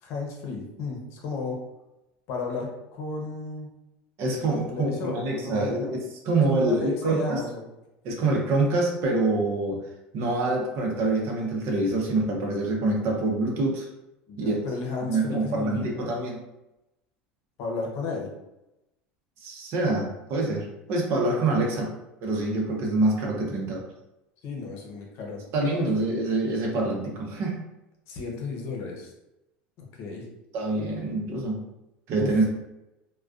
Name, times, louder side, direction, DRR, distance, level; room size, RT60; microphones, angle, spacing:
voice 1, 0.0-1.6 2.3-3.7 4.5-5.9 6.4-7.7 14.3-16.1 17.6-18.3 24.4-25.4 25.7-25.9 28.1-29.1 29.8-30.3 32.1-32.3, left 4 dB, 60° left, 0 dB, 0.7 m, -34 dB
voice 2, 4.2-7.4 8.0-9.8 10.1-13.9 14.3-14.6 15.1-16.4 19.4-21.9 22.2-23.8 25.5-27.6 30.5-31.6 32.1-32.5, right 2 dB, 55° right, 0 dB, 0.7 m, -26 dB
2.2 x 2.2 x 2.4 m, 0.91 s
supercardioid pair, 95°, 5 cm